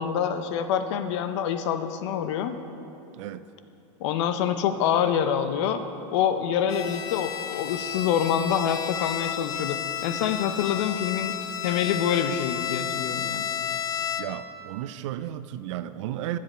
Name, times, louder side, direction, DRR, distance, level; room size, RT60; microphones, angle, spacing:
voice 1, 0.0-2.5 4.0-5.8 6.1-11.4 11.6-13.5, left 8 dB, 60° left, 9 dB, 0.7 m, -26 dB
Bowed string instrument, 6.7-14.5, left 10 dB, 20° left, 0.3 m, -32 dB
voice 2, 14.2-16.4, right 12 dB, 65° right, 13 dB, 0.5 m, -33 dB
12.5 x 7.5 x 4.4 m, 2.8 s
supercardioid pair, 140°, 16 cm